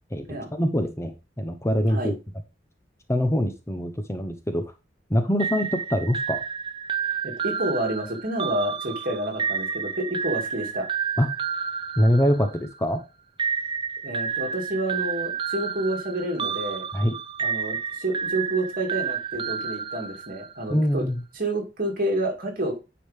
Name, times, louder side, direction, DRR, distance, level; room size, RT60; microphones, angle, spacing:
voice 1, 0.5-2.2 3.1-4.6 5.1-6.4 11.2-11.3 12.0-13.0 16.9-17.2 20.7-21.2, equal, 15° left, 7 dB, 0.9 m, -24 dB
sound 1, 5.4-12.8 13.4-20.6, right 6 dB, 25° right, 0.5 m, -30 dB
voice 2, 7.2-10.9 14.0-16.9 17.4-21.1 21.3-22.7, right 1 dB, 50° right, 2 dB, 2.5 m, -29 dB
10.0 x 5.0 x 3.5 m, 0.28 s
head